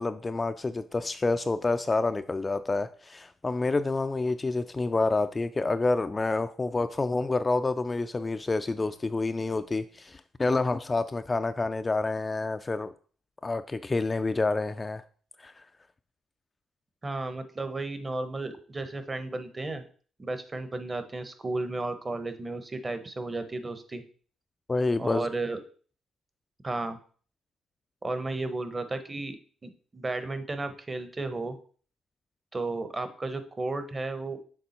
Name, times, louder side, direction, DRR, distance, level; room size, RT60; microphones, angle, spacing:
voice 1, 0.0-12.9 13.4-15.0 15.4-15.6 24.7-25.3, left 3 dB, 25° left, 10 dB, 0.3 m, -28 dB
voice 2, 17.0-19.8 20.2-24.0 25.0-25.6 26.6-27.0 28.0-29.4 29.6-31.6 32.5-34.4, right 2 dB, 25° right, 9 dB, 0.8 m, -33 dB
6.8 x 3.7 x 4.2 m, 0.43 s
cardioid pair, 90°, 0 cm